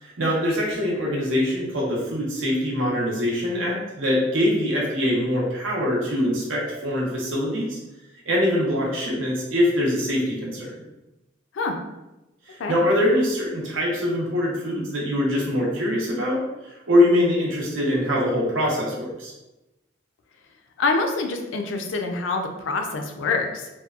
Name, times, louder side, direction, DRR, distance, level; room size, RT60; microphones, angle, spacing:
voice 1, 0.0-7.8 8.2-10.8 12.5-19.3, left 1 dB, 90° right, -3 dB, 0.8 m, -23 dB
voice 2, 20.8-23.7, left 3 dB, 70° left, 4 dB, 0.4 m, -26 dB
2.8 x 2.2 x 2.3 m, 0.99 s
head